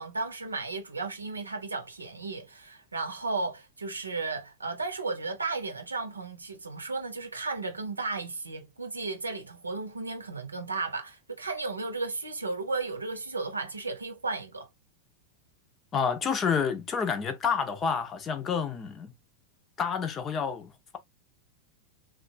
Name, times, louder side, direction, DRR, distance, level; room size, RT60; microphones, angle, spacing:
voice 1, 0.0-14.7, right 3 dB, 80° right, 0.8 m, -34 dB
voice 2, 15.9-19.1 19.8-21.0, left 6 dB, 25° left, 0.6 m, -29 dB
3.2 x 2.4 x 2.6 m
figure-of-eight pair, 90°, 0 cm